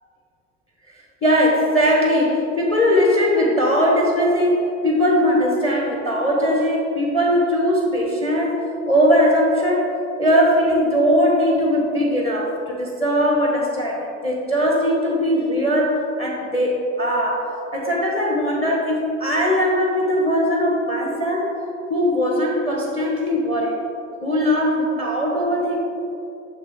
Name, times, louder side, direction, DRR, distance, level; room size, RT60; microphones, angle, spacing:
voice 1, 1.2-9.9 10.2-21.6 21.9-23.8 24.2-25.8, equal, 15° left, -1 dB, 1.0 m, -20 dB
7.1 x 6.3 x 3.6 m, 2.8 s
figure-of-eight pair, 70°, 39 cm